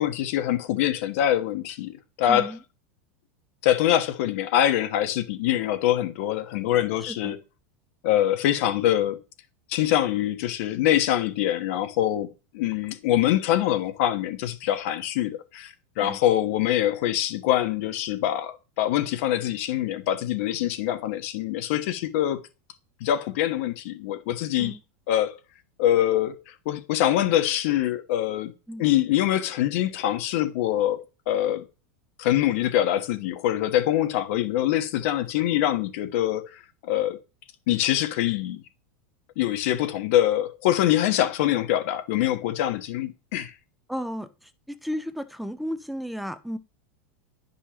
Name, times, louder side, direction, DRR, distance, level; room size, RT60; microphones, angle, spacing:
voice 1, 0.0-2.5 3.6-7.4 8.0-9.2 9.7-22.4 23.0-24.7 25.1-25.3 25.8-28.5 28.8-31.0 31.3-31.6 32.2-37.2 37.7-38.6 39.4-43.5, left 12 dB, 65° left, 1.1 m, -24 dB
voice 2, 2.3-2.6 7.0-7.3 16.0-16.2 24.6-24.8 28.7-28.8 43.9-46.6, equal, ahead, 0.6 m, -34 dB
9.9 x 5.5 x 3.0 m
supercardioid pair, 130°, 8 cm